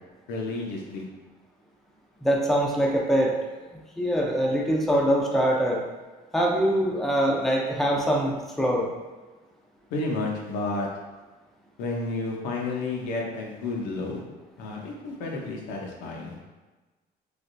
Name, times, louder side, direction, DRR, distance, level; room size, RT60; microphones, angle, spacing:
voice 1, 0.3-1.0 9.9-10.9 11.8-14.2 14.6-16.4, left 3 dB, 90° left, -1 dB, 0.6 m, -31 dB
voice 2, 2.2-3.3 4.0-5.8 6.3-8.9, equal, ahead, -1 dB, 0.4 m, -23 dB
3.3 x 2.3 x 2.5 m, 1.2 s
cardioid pair, 110°, 17 cm